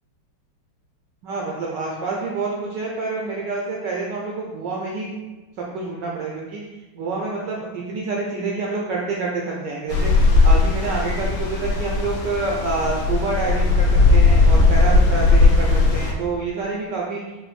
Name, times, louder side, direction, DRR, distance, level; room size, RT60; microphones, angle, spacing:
voice 1, 1.2-5.2 5.6-6.6 6.9-10.1 10.4-17.2, right 3 dB, 90° right, -3 dB, 0.9 m, -27 dB
sound 1, 9.9-16.1, left 3 dB, 75° left, 1.3 m, -17 dB
4.9 x 2.1 x 3.2 m, 1.2 s
omnidirectional pair, 2.4 m